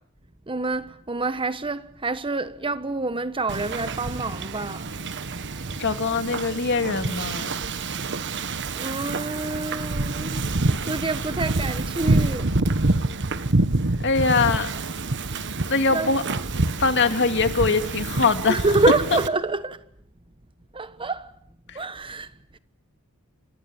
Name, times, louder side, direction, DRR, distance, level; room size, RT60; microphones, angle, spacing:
voice 1, 0.5-4.9 8.3-10.5 10.8-12.5 15.9-16.1 18.5-19.8 20.7-21.3 21.7-22.6, right 3 dB, 25° right, 1.3 m, -27 dB
Wind / Ocean, 3.5-19.3, right 2 dB, 55° right, 1.4 m, -27 dB
voice 2, 5.8-7.6 14.0-14.7 15.7-16.2 16.8-18.7 19.1-19.2 21.7-21.8, left 4 dB, 55° left, 2.4 m, -22 dB
28.5 x 25.5 x 7.3 m
head